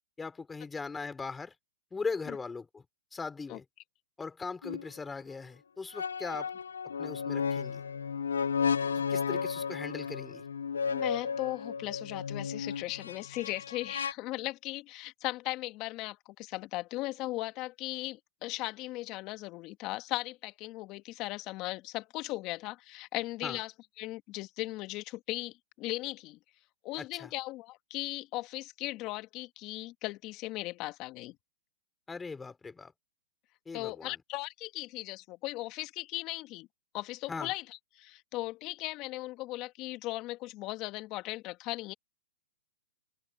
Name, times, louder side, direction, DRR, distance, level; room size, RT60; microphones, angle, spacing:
voice 1, 0.2-1.5 1.9-2.8 3.1-3.6 4.2-6.5 7.0-7.8 8.9-10.4 23.4-23.6 27.0-27.3 32.1-32.9 33.7-34.2 37.3-37.5, left 4 dB, 10° left, 5.9 m, -39 dB
sound 1, 4.6-4.8 5.9-14.1, left 6 dB, 90° left, 0.8 m, -33 dB
voice 2, 10.9-26.4 26.8-31.4 33.7-36.7 36.9-41.9, left 19 dB, 35° left, 2.0 m, -38 dB
hypercardioid pair, 130°, 0 cm